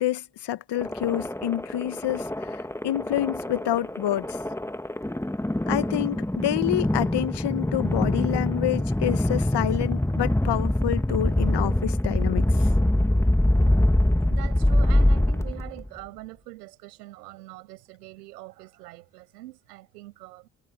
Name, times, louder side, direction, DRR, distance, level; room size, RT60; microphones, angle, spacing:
voice 1, 0.0-4.4 5.7-12.7, left 13 dB, 60° left, 1.6 m, -28 dB
sound 1, 0.8-15.9, left 1 dB, 5° left, 2.0 m, -24 dB
voice 2, 14.3-20.5, right 18 dB, 85° right, 5.7 m, -43 dB
hypercardioid pair, 50°, 46 cm